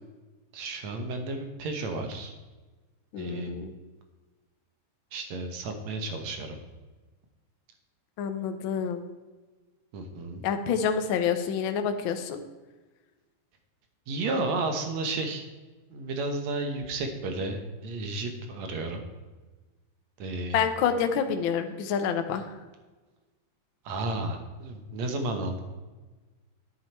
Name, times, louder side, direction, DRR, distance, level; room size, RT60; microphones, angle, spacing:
voice 1, 0.5-2.3 3.2-3.5 5.1-6.6 9.9-10.4 14.1-15.4 15.9-19.0 20.2-20.6 23.9-25.6, right 2 dB, 70° right, 5 dB, 2.3 m, -32 dB
voice 2, 3.1-3.7 8.2-9.0 10.4-12.4 20.5-22.6, left 7 dB, 80° left, 7 dB, 1.1 m, -28 dB
10.5 x 9.4 x 4.5 m, 1.2 s
omnidirectional pair, 3.6 m